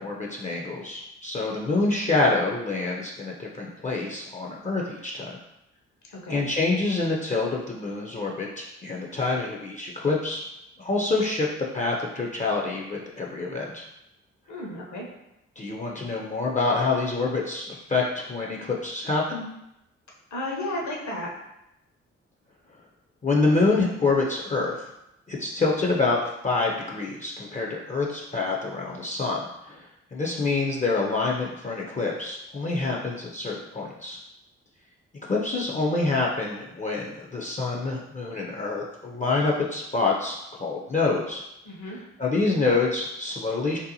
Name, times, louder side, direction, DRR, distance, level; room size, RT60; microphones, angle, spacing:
voice 1, 0.0-5.4 6.3-10.4 10.8-11.5 11.7-13.8 15.6-19.4 23.2-24.9 25.3-34.2 35.2-41.4 41.9-43.8, left 3 dB, 25° left, -2 dB, 0.4 m, -26 dB
voice 2, 6.1-6.4 14.5-15.1 20.3-21.3 41.6-42.0, left 1 dB, 65° left, -2 dB, 0.8 m, -33 dB
2.7 x 2.1 x 2.7 m, 0.86 s
supercardioid pair, 45°, 31 cm